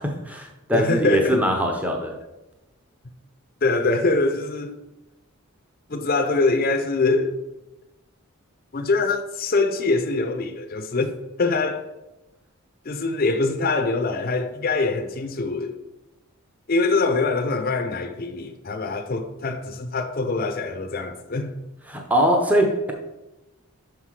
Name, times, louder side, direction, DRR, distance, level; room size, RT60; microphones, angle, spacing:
voice 1, 0.0-2.2 21.9-22.9, equal, 5° right, 0.7 m, -22 dB
voice 2, 0.7-1.4 3.6-4.8 5.9-7.4 8.7-11.9 12.8-15.7 16.7-21.6, left 3 dB, 40° left, 0.6 m, -24 dB
6.4 x 5.8 x 4.8 m
head